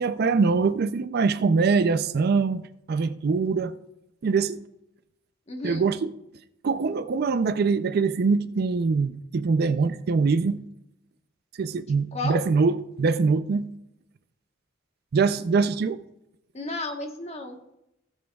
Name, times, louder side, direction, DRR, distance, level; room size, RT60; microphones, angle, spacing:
voice 1, 0.0-2.6 2.9-3.8 4.2-4.6 5.6-6.1 6.6-10.6 11.6-13.7 15.1-16.0, right 4 dB, 55° right, 0.4 m, -23 dB
voice 2, 5.5-5.9 11.9-12.4 16.5-17.8, left 2 dB, 35° left, 1.1 m, -34 dB
17.0 x 7.3 x 2.3 m
head